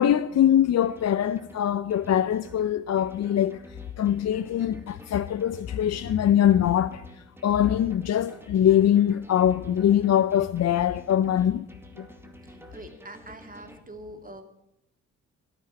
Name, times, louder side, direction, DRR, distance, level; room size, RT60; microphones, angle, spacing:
voice 1, 0.0-3.6 4.0-7.0 7.4-11.7 12.0-12.1, left 10 dB, 50° left, 0.6 m, -22 dB
sound 1, 0.8-13.8, right 1 dB, 5° right, 2.2 m, -50 dB
voice 2, 12.4-14.4, right 1 dB, 25° right, 2.7 m, -44 dB
12.5 x 9.2 x 9.2 m
supercardioid pair, 50°, 33 cm